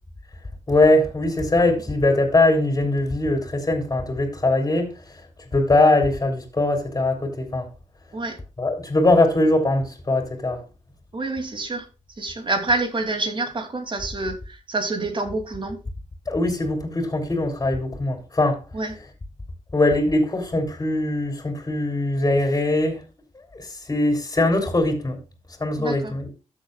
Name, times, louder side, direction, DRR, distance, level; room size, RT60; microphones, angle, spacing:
voice 1, 0.7-4.9 5.5-7.7 8.6-10.6 16.3-18.6 19.7-23.0 23.5-25.2 25.6-26.3, left 2 dB, 30° left, 3.4 m, -21 dB
voice 2, 11.1-11.9 12.2-15.8 18.7-18.9 25.8-26.1, right 2 dB, 40° right, 2.8 m, -27 dB
13.5 x 7.3 x 2.4 m
cardioid pair, 75°, 13 cm